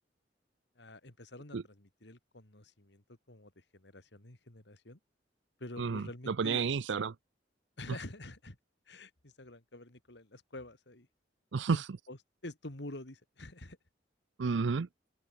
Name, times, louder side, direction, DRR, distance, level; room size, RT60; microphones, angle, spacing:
voice 1, 0.7-5.0 5.6-6.6 7.8-8.6 8.9-11.1 11.7-13.8, left 1 dB, 65° left, 3.0 m, -48 dB
voice 2, 5.8-7.1 11.5-11.8 14.4-14.9, right 5 dB, 75° right, 0.5 m, -31 dB
head